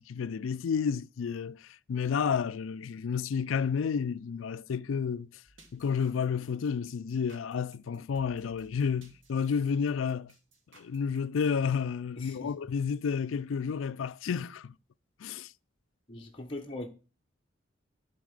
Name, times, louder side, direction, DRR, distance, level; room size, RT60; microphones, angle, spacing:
voice 1, 0.0-5.3 5.7-10.3 10.7-14.7 15.2-15.5, left 6 dB, 90° left, 0.4 m, -31 dB
sound 1, 5.5-11.4, right 1 dB, 85° right, 2.2 m, -60 dB
voice 2, 12.2-12.5 16.1-16.9, left 2 dB, 30° left, 0.8 m, -40 dB
12.0 x 4.2 x 6.4 m
head